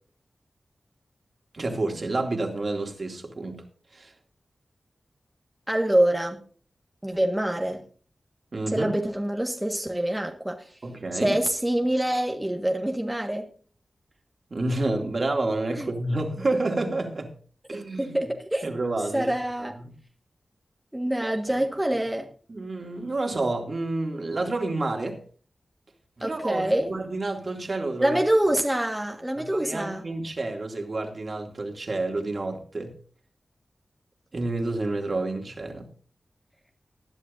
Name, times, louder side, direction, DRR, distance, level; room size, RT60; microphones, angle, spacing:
voice 1, 1.5-3.6 3.9-4.1 8.5-8.9 10.8-11.4 14.5-17.3 17.7-18.1 18.6-19.3 19.6-19.7 21.2-21.3 22.5-25.2 26.2-28.2 29.4-32.9 34.3-35.9, right 2 dB, 50° right, 2.6 m, -29 dB
voice 2, 5.7-6.4 7.0-7.8 8.7-10.6 11.2-13.5 15.8-15.9 18.0-18.6 19.1-19.8 20.9-22.3 26.2-26.9 28.0-30.1, right 1 dB, 10° right, 1.6 m, -25 dB
19.5 x 10.5 x 2.7 m
wide cardioid pair, 80°, 0 cm